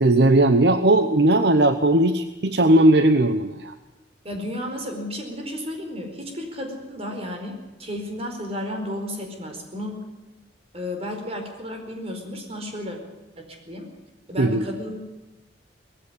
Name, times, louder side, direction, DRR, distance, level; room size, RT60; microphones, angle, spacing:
voice 1, 0.0-3.7 14.4-14.6, right 1 dB, 65° right, 10 dB, 0.9 m, -18 dB
voice 2, 4.2-10.1 10.7-13.0 13.4-13.9 14.3-15.0, left 1 dB, 35° right, 4 dB, 4.6 m, -33 dB
19.5 x 15.5 x 9.7 m, 1.0 s
head